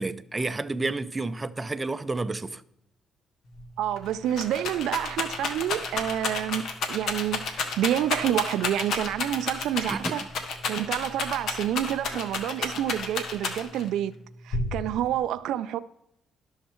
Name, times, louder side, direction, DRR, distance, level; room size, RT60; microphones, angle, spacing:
voice 1, 0.0-2.6 9.8-10.2, right 3 dB, 20° right, 0.5 m, -30 dB
Rattle, 3.6-3.7 4.0-13.9 14.5-15.1, left 4 dB, 75° left, 1.3 m, -31 dB
voice 2, 3.8-10.2 10.7-14.1 14.4-15.8, right 11 dB, 85° right, 0.3 m, -28 dB
11.5 x 6.5 x 4.4 m
cardioid pair, 90°, 0 cm